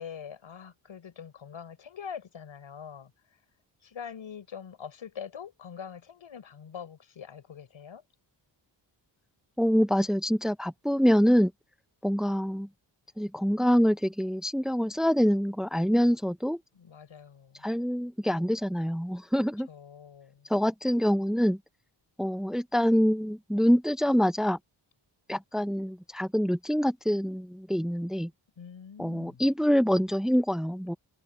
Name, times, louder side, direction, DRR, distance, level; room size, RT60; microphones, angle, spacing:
voice 1, 0.0-3.1 3.8-8.0 16.7-17.7 19.7-20.5 28.6-29.4, left 7 dB, 75° left, 5.7 m, -44 dB
voice 2, 9.6-11.5 12.0-12.7 13.2-16.6 17.6-19.7 20.5-21.6 22.2-24.6 25.3-28.3 29.0-30.9, equal, ahead, 1.4 m, -25 dB
cardioid pair, 70°, 47 cm